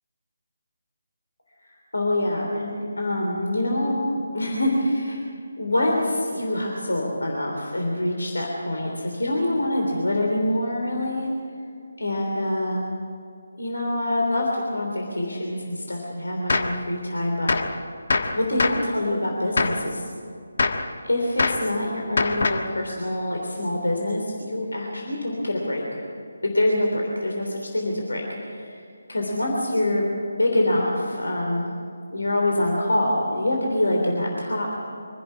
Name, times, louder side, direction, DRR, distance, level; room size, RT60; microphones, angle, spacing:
voice 1, 1.6-5.2 5.6-11.3 12.0-12.8 13.5-17.8 18.3-20.0 21.0-26.0 26.4-28.8 29.1-30.1 30.4-31.8 32.1-34.7, left 1 dB, 75° left, 0 dB, 3.4 m, -25 dB
Gunshot gunfire, 16.5-16.8 17.5-17.8 18.1-18.9 19.6-19.9 20.6-20.9 21.4-21.7 22.2-22.7, left 3 dB, 55° left, 1.4 m, -23 dB
25.0 x 11.0 x 9.9 m, 2.4 s
figure-of-eight pair, 150°, 0 cm